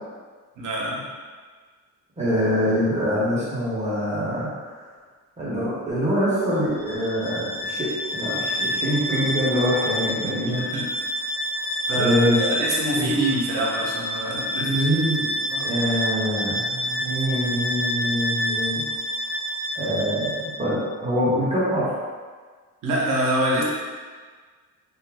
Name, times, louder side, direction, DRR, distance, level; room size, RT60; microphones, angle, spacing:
voice 1, 0.6-1.1 10.1-10.8 11.9-14.7 15.5-15.7 22.8-23.6, right 1 dB, 65° right, -3 dB, 0.8 m, -26 dB
voice 2, 2.2-4.7 5.4-10.7 12.0-12.4 13.0-13.1 14.6-18.8 19.8-21.9, equal, 20° right, -9 dB, 0.8 m, -24 dB
Bowed string instrument, 6.7-20.6, equal, 40° left, 0.4 m, -28 dB
2.5 x 2.4 x 3.4 m, 1.5 s
cardioid pair, 170°, 33 cm